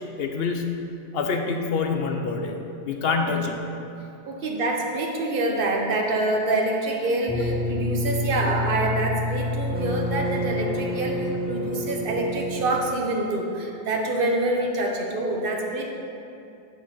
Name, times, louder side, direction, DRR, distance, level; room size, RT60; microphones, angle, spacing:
voice 1, 0.2-0.7 1.1-2.5 2.8-3.5, left 5 dB, 65° left, 3 dB, 0.9 m, -26 dB
voice 2, 3.1-3.4 4.3-15.9, right 2 dB, 55° right, 0 dB, 1.1 m, -26 dB
sound 1, 7.3-12.9, left 1 dB, 10° right, 0.6 m, -28 dB
6.9 x 5.1 x 5.5 m, 2.7 s
omnidirectional pair, 1.1 m